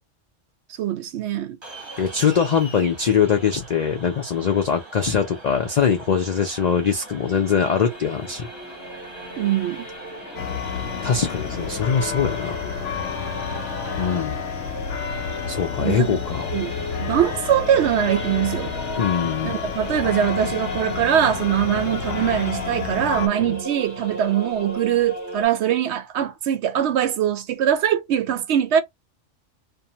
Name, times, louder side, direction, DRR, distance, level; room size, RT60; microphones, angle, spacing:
voice 1, 0.8-1.6 9.4-9.9 15.8-16.1 16.5-16.7 17.0-18.7 19.4-28.8, right 10 dB, 70° right, 0.8 m, -22 dB
sound 1, 1.6-14.2, right 3 dB, 25° right, 0.8 m, -43 dB
voice 2, 2.0-8.5 11.0-12.6 14.0-14.4 15.5-16.6 19.0-19.6, left 7 dB, 70° left, 0.4 m, -22 dB
Singing / Musical instrument, 6.1-25.5, left 1 dB, 15° left, 0.7 m, -36 dB
sound 2, 10.4-23.3, left 7 dB, 90° left, 0.9 m, -30 dB
2.6 x 2.1 x 2.7 m
omnidirectional pair, 1.3 m